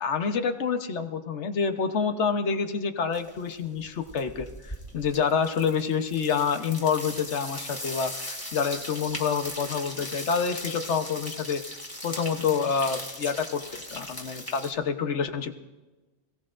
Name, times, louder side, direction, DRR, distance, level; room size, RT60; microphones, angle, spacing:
voice 1, 0.0-11.6 12.0-15.6, left 6 dB, 75° left, 7 dB, 1.3 m, -28 dB
sound 1, 3.1-3.5 3.8-14.7, left 1 dB, 20° left, 1.7 m, -39 dB
27.0 x 17.0 x 2.6 m, 1.2 s
omnidirectional pair, 1.2 m